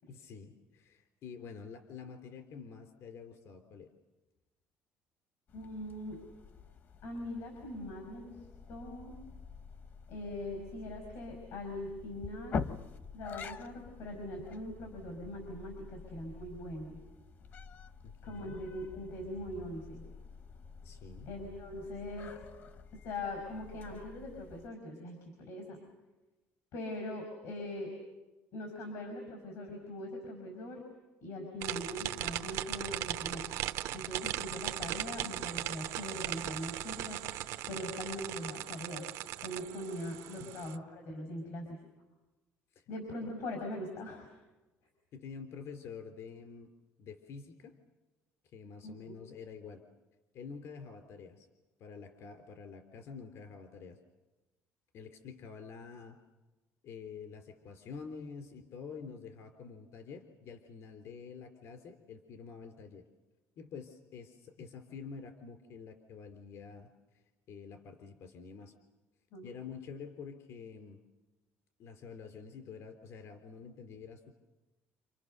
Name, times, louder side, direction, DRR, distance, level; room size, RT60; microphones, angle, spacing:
voice 1, 0.1-3.9 18.0-18.6 20.8-21.3 40.4-40.5 42.7-42.8 45.1-46.7 47.0-47.8 48.5-49.8 50.3-51.5 51.8-54.0 54.9-56.2 56.8-63.1 63.6-66.9 67.5-68.7 69.4-71.0 71.8-74.3, left 5 dB, 60° left, 6 dB, 3.2 m, -48 dB
voice 2, 5.5-6.2 7.0-8.4 8.7-9.2 10.1-12.6 13.1-17.0 18.2-20.0 21.3-22.3 22.9-25.8 26.7-27.9 28.5-30.8 31.2-37.2 37.7-39.1 39.4-41.8 42.9-44.3 48.8-49.2 69.3-69.5, left 1 dB, 80° left, 3 dB, 5.8 m, -41 dB
sound 1, 5.5-24.7, left 5 dB, 40° left, 1.1 m, -46 dB
sound 2, 31.6-40.8, right 14 dB, 85° right, 0.9 m, -38 dB
29.5 x 29.0 x 6.7 m, 1.1 s
cardioid pair, 135°, 5 cm